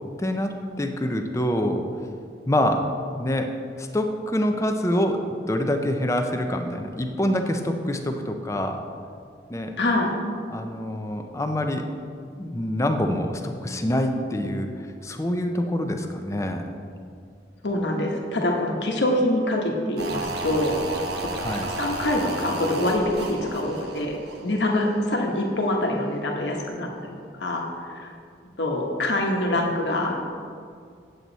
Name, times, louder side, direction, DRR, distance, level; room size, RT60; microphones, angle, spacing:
voice 1, 0.2-1.9 2.5-2.9 3.2-5.2 5.5-8.8 9.5-9.7 10.5-11.9 12.4-16.6 21.4-21.7, left 1 dB, 15° left, 5 dB, 0.6 m, -26 dB
voice 2, 9.8-10.1 17.6-20.7 21.2-21.3 21.7-24.2 24.4-28.1 28.6-30.2, left 1 dB, 85° left, 0 dB, 1.3 m, -25 dB
sound 1, 20.0-25.1 25.4-25.5, right 2 dB, 70° right, 0.9 m, -33 dB
8.7 x 7.8 x 4.1 m, 2.2 s
head